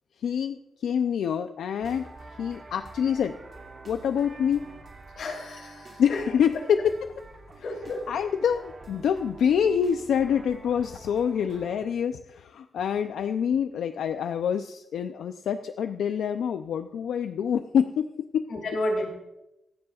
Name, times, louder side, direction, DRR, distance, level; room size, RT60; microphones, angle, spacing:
voice 1, 0.2-2.1 2.4-3.4 3.9-4.7 6.0-6.9 8.1-18.5, left 8 dB, 90° left, 8 dB, 0.5 m, -26 dB
sound 1, 1.8-11.8, right 3 dB, 35° right, 2.4 m, -47 dB
voice 2, 5.2-6.0 7.6-8.0 18.5-19.1, left 1 dB, 65° left, 0 dB, 3.2 m, -31 dB
25.0 x 9.5 x 2.4 m, 0.90 s
wide cardioid pair, 170°, 0 cm